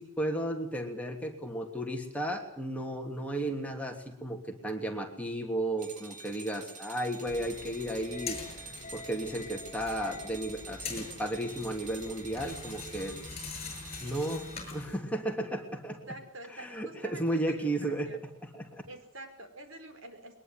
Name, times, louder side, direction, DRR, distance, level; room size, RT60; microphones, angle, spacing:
voice 1, 0.0-8.4 8.9-13.2 14.0-14.5 14.7-16.0 16.5-18.1 18.4-18.8, right 1 dB, 5° left, 2 dB, 2.9 m, -34 dB
sound 1, 5.8-14.8, right 4 dB, 40° right, 3.1 m, -48 dB
sound 2, 7.3-15.0, left 4 dB, 30° left, 7.8 m, -43 dB
voice 2, 16.1-18.2 18.9-20.4, right 2 dB, 70° right, 7 dB, 5.0 m, -47 dB
22.5 x 20.5 x 9.5 m, 0.68 s
head